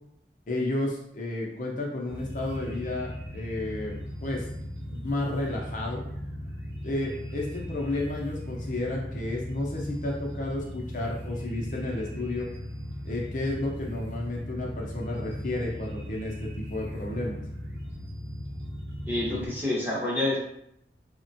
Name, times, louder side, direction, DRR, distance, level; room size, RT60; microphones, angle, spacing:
voice 1, 0.5-4.5 4.9-6.0 6.8-12.5 13.0-17.4, left 2 dB, 45° left, -2 dB, 0.5 m, -32 dB
sound 1, 2.1-19.5, equal, 70° right, 0.7 m, -38 dB
voice 2, 19.0-20.4, left 1 dB, 10° right, -6 dB, 0.7 m, -28 dB
3.4 x 2.1 x 2.7 m, 0.74 s
head